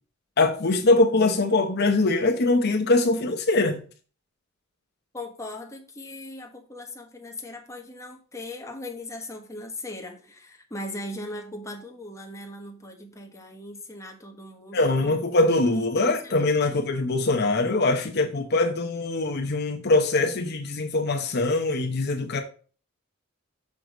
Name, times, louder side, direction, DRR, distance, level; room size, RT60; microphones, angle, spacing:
voice 1, 0.4-3.8 14.7-22.4, left 2 dB, 55° left, 0.8 m, -22 dB
voice 2, 5.1-15.2 15.6-16.4 16.7-16.8, left 1 dB, 15° left, 1.3 m, -39 dB
6.5 x 4.8 x 4.9 m
head